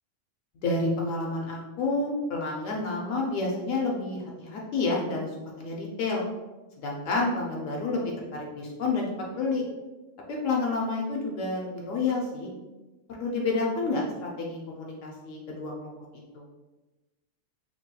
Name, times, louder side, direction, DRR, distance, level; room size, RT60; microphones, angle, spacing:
voice 1, 0.6-5.3 5.6-6.2 6.8-9.1 9.4-9.6 10.3-12.5 13.1-16.0 16.3-16.4, left 3 dB, 75° left, -2 dB, 1.0 m, -29 dB
4.1 x 3.0 x 2.2 m, 1.1 s
omnidirectional pair, 1.4 m